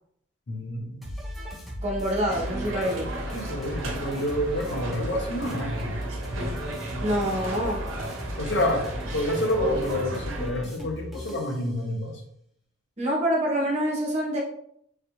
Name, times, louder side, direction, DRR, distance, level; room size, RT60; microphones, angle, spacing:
voice 1, 0.5-1.1 3.3-6.0 8.4-8.9 9.1-12.2, left 1 dB, 65° left, 1 dB, 0.7 m, -28 dB
sound 1, 1.0-11.6, equal, ahead, 0.7 m, -36 dB
voice 2, 1.8-3.2 7.0-7.8 13.0-14.4, equal, 35° right, -3 dB, 0.8 m, -26 dB
sound 2, 2.3-10.5, right 1 dB, 85° right, 0.6 m, -35 dB
3.3 x 2.5 x 2.9 m, 0.69 s
head